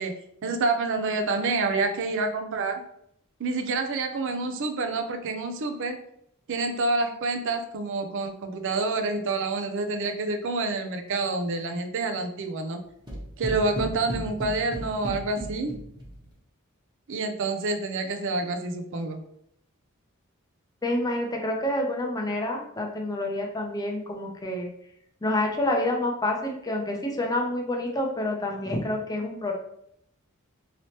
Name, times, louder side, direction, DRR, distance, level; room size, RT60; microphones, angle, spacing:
voice 1, 0.0-2.8 3.4-6.0 6.5-12.8 13.4-15.7 17.1-19.2, right 3 dB, 60° right, 6 dB, 0.5 m, -28 dB
sound 1, 13.1-16.3, right 1 dB, 20° right, 0.9 m, -34 dB
voice 2, 20.8-24.7 25.2-29.5, left 1 dB, 15° left, 1 dB, 0.5 m, -28 dB
3.0 x 2.9 x 2.8 m, 0.73 s
head